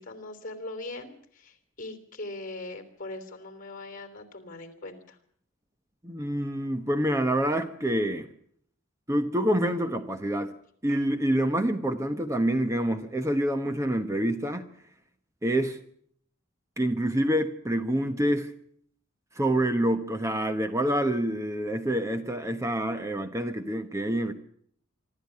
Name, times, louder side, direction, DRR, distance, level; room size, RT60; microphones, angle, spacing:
voice 1, 0.0-5.2, left 2 dB, 40° left, 3.4 m, -40 dB
voice 2, 6.0-8.3 9.1-10.5 10.8-14.6 15.4-15.8 16.8-18.5 19.3-24.3, right 1 dB, 15° right, 1.0 m, -27 dB
25.5 x 13.0 x 9.5 m
head